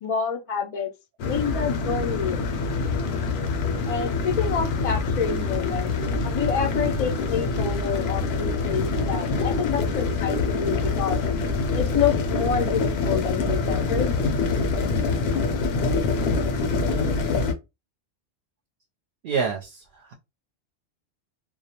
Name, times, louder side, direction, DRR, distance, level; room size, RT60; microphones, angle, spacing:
voice 1, 0.0-0.9 1.2-2.8 3.9-5.9 6.2-11.2 11.7-14.1, left 6 dB, 50° left, 0.4 m, -28 dB
sound 1, 1.2-17.5, left 4 dB, 70° left, 0.8 m, -25 dB
voice 2, 19.2-20.1, right 6 dB, 60° right, 0.7 m, -28 dB
2.3 x 2.0 x 2.8 m
omnidirectional pair, 1.1 m